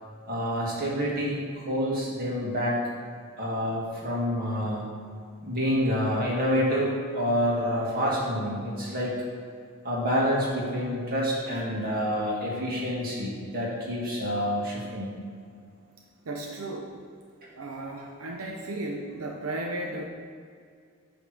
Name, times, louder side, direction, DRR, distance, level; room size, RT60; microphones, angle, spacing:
voice 1, 0.3-2.8 3.4-4.9 5.4-9.1 9.8-15.1, equal, 45° right, -4 dB, 1.9 m, -28 dB
voice 2, 16.3-16.9 17.6-20.1, right 2 dB, 85° right, 0 dB, 0.7 m, -34 dB
8.5 x 3.5 x 6.1 m, 2.2 s
head